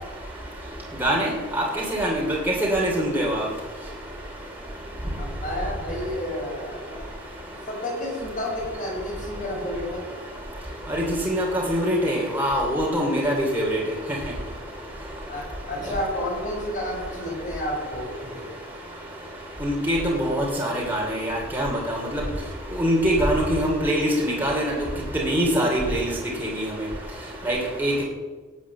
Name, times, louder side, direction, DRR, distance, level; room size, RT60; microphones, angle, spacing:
voice 1, 1.0-1.6 1.9-2.4 2.7-3.5 10.9-13.8 19.6-22.2 22.7-24.7 25.1-26.1 26.4-26.6 27.4-28.0, equal, 10° right, -4 dB, 3.0 m, -23 dB
voice 2, 5.2-7.0 7.7-10.0 15.3-18.5, left 1 dB, 40° left, -3 dB, 6.1 m, -31 dB
18.0 x 8.4 x 7.4 m, 1.4 s
head